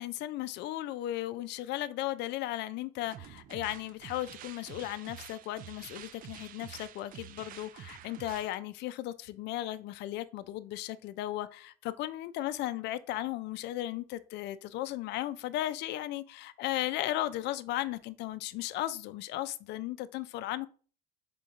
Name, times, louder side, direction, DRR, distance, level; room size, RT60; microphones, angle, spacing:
voice 1, 0.0-20.7, left 14 dB, 55° left, 0.5 m, -36 dB
sound 1, 3.0-8.6, right 11 dB, 40° right, 0.4 m, -48 dB
3.7 x 3.5 x 3.9 m
supercardioid pair, 90°, 21 cm